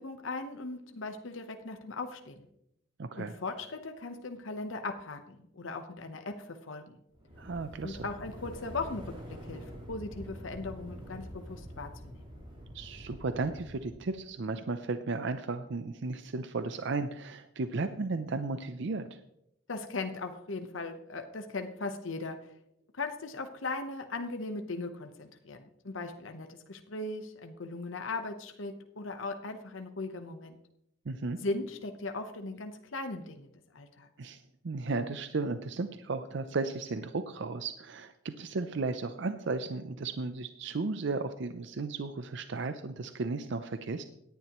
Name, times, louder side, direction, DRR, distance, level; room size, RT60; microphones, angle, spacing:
voice 1, 0.0-2.5 3.2-7.0 7.8-9.2 9.4-12.3 19.7-22.4 22.9-30.6 31.4-34.1, left 3 dB, 80° left, 6 dB, 1.0 m, -38 dB
voice 2, 3.0-3.3 7.4-8.1 12.7-19.2 31.1-31.4 34.2-44.0, right 3 dB, 65° right, 10 dB, 0.6 m, -34 dB
sound 1, 7.1-14.1, equal, 25° right, 3.9 m, -46 dB
17.0 x 10.5 x 3.0 m, 0.80 s
head